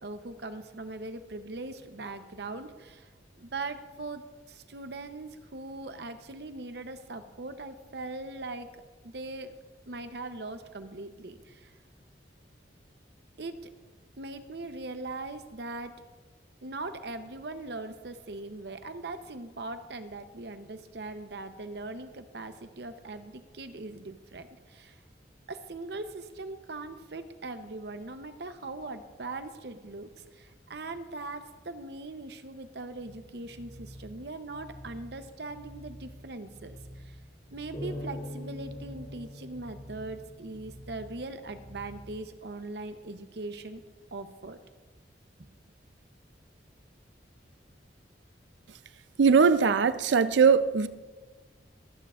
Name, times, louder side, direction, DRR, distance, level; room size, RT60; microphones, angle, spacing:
voice 1, 0.0-3.1 3.4-9.5 9.9-11.7 13.4-13.7 14.2-15.9 16.6-25.0 25.5-37.2 37.5-43.8 44.1-44.6 45.4-45.5, right 2 dB, 65° right, 0.8 m, -40 dB
sound 1, 33.0-42.2, equal, ahead, 1.4 m, -49 dB
sound 2, 37.7-41.1, left 1 dB, 50° left, 3.0 m, -42 dB
voice 2, 49.2-50.9, right 5 dB, 85° right, 0.5 m, -21 dB
23.5 x 9.3 x 2.5 m
head